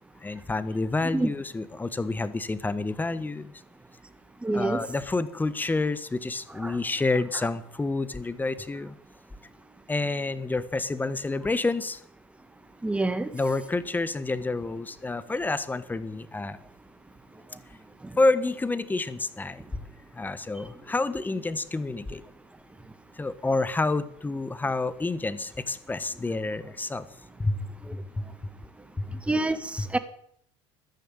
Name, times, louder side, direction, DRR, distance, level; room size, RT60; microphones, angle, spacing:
voice 1, 0.2-3.5 4.5-9.0 9.9-12.0 13.3-16.6 18.2-19.8 20.1-22.2 23.2-27.1 27.4-28.3 29.0-29.2 29.8-29.9, left 3 dB, 15° left, 15 dB, 1.4 m, -29 dB
voice 2, 4.4-4.8 6.6-6.7 12.8-13.3 29.3-29.6 29.9-30.0, right 2 dB, 10° right, 11 dB, 1.8 m, -25 dB
14.0 x 10.5 x 9.0 m, 0.66 s
supercardioid pair, 95°, 13 cm